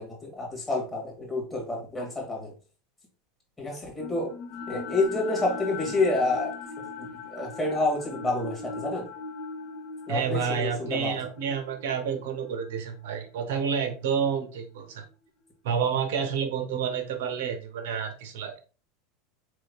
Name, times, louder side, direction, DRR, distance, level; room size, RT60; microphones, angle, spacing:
voice 1, 0.0-2.5 3.6-4.3 4.7-6.5 7.0-9.1 10.1-11.2, left 2 dB, 10° left, -1 dB, 2.2 m, -29 dB
sound 1, 4.0-14.2, left 4 dB, 55° left, 1.0 m, -40 dB
voice 2, 10.1-15.0 15.6-18.6, right 7 dB, 80° right, 6 dB, 0.8 m, -29 dB
5.0 x 3.6 x 2.4 m, 0.35 s
supercardioid pair, 120°, 0 cm